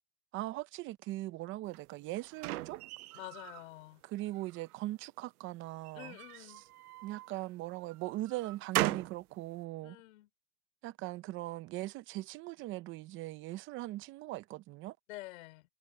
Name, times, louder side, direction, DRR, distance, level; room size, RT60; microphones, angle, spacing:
voice 1, 0.3-2.8 4.0-6.2 7.0-10.0 10.8-15.0, right 17 dB, 25° right, 0.8 m, -40 dB
sound 1, 1.7-3.7 4.1-4.9 5.8-7.3 7.9-9.2, right 18 dB, 65° right, 0.8 m, -38 dB
voice 2, 3.1-4.0 5.9-6.6 9.8-10.3 15.1-15.6, left 18 dB, 55° left, 5.5 m, -48 dB
supercardioid pair, 145°, 47 cm